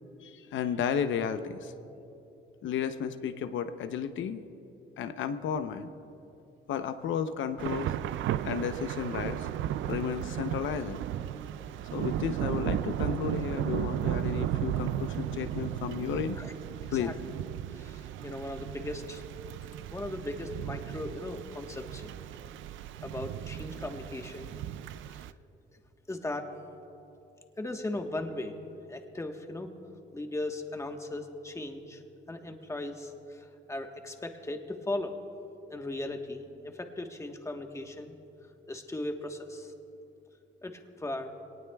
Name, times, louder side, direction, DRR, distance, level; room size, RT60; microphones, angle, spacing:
voice 1, 0.2-1.7 2.6-4.4 5.0-5.9 6.7-8.1 8.4-11.0 11.9-16.4 16.9-17.1, left 8 dB, 75° left, 9 dB, 0.8 m, -33 dB
Thunder / Rain, 7.6-25.3, right 11 dB, 75° right, 0.4 m, -35 dB
voice 2, 16.8-17.1 17.7-19.2 19.9-22.2 23.0-24.5 25.1-25.2 26.1-26.5 27.6-28.5 28.9-29.7 30.1-32.0 32.3-35.2 35.7-38.1 38.7-39.7 40.6-41.3, left 2 dB, 15° left, 4 dB, 1.3 m, -38 dB
22.5 x 18.5 x 2.3 m, 2.9 s
cardioid pair, 90°, 20 cm